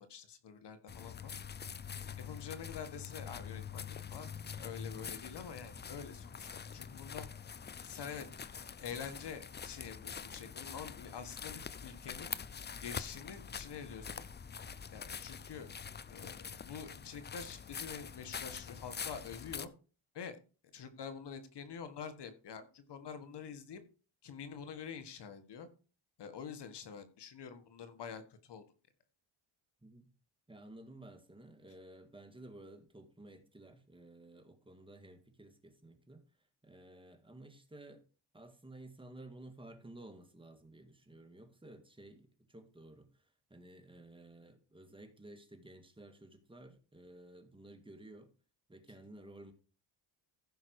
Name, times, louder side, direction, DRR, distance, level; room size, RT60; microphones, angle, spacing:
voice 1, 0.0-1.3 2.2-7.3 7.8-8.3 8.8-12.3 12.8-14.2 14.9-15.7 16.1-19.7 20.1-20.4 20.7-23.8 24.2-25.7 26.2-28.6, left 7 dB, 60° left, 1.6 m, -47 dB
sound 1, 0.9-19.7, left 7 dB, 25° left, 0.5 m, -45 dB
voice 2, 29.8-30.1 30.5-36.2 36.6-38.0 38.3-43.1 43.5-48.3 48.7-49.5, right 1 dB, 10° right, 2.0 m, -54 dB
14.5 x 5.7 x 4.7 m
cardioid pair, 105°, 47 cm